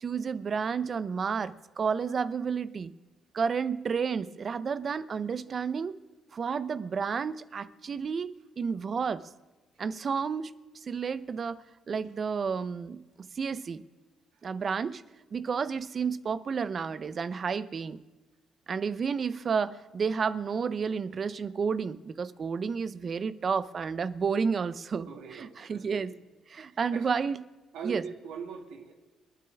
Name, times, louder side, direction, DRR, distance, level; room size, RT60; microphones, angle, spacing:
voice 1, 0.0-2.9 3.3-6.0 6.3-9.2 9.8-13.8 14.4-15.0 15.3-18.0 18.7-26.1 26.5-27.4 27.8-28.0, right 6 dB, 45° right, 15 dB, 0.7 m, -31 dB
voice 2, 25.0-26.2 26.9-27.2 27.7-28.9, right 6 dB, 85° right, 4 dB, 2.2 m, -42 dB
28.0 x 9.4 x 3.5 m, 1.2 s
cardioid pair, 90°, 0 cm